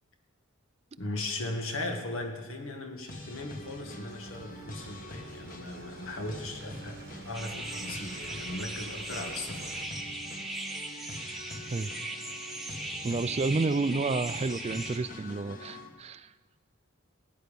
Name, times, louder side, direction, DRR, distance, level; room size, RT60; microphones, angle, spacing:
voice 1, 1.0-9.8, left 2 dB, 85° left, 4 dB, 1.7 m, -38 dB
Boat Passing By, 3.0-9.8, right 3 dB, 50° right, 1.0 m, -51 dB
sound 1, 3.1-15.9, left 1 dB, 40° left, 1.4 m, -45 dB
metasynth bugnite, 7.3-15.0, right 2 dB, ahead, 1.1 m, -39 dB
voice 2, 13.0-16.3, right 3 dB, 30° right, 15 dB, 0.3 m, -30 dB
17.0 x 9.4 x 5.3 m, 1.4 s
head